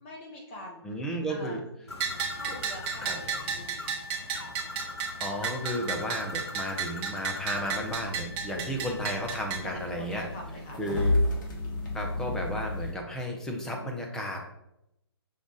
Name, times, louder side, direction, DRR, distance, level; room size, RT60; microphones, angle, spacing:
voice 1, 0.0-0.8 1.3-1.6 2.3-4.0 7.3-7.7 9.6-10.8, left 1 dB, 25° left, -1 dB, 0.8 m, -44 dB
voice 2, 0.8-1.6 3.0-3.2 5.2-10.3 10.8-11.2 11.9-14.5, equal, 5° left, 1 dB, 0.5 m, -33 dB
Bird, 1.9-8.0, left 2 dB, 75° left, 0.6 m, -42 dB
Bell, 2.0-9.6, right 6 dB, 25° right, 0.8 m, -34 dB
sound 1, 7.5-12.9, left 2 dB, 45° left, 1.1 m, -32 dB
5.3 x 2.3 x 3.8 m, 0.84 s
figure-of-eight pair, 135°, 14 cm